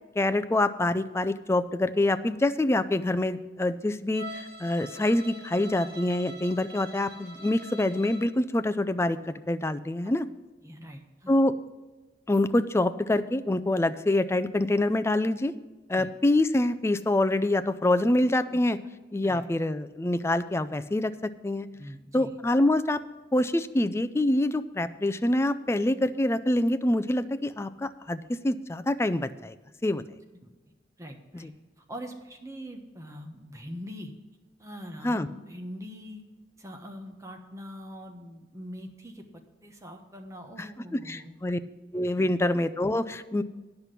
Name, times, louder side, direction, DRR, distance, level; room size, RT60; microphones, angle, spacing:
voice 1, 0.2-10.3 11.3-11.5 12.3-15.5 15.9-18.8 19.1-21.7 22.1-23.0 23.3-29.6 29.8-30.0 31.4-31.5 35.0-35.3 40.9-41.6 41.9-43.4, left 1 dB, 15° left, 11 dB, 0.4 m, -26 dB
Bowed string instrument, 4.1-8.4, equal, 65° right, 2.5 m, -44 dB
voice 2, 10.6-11.3 15.9-16.1 18.5-18.6 19.2-19.5 21.7-22.3 30.3-30.5 31.0-34.1 34.6-36.2 36.6-39.2 39.6-41.4 42.1-42.4, equal, 15° right, 4 dB, 1.2 m, -43 dB
9.8 x 5.9 x 8.1 m, 1.2 s
head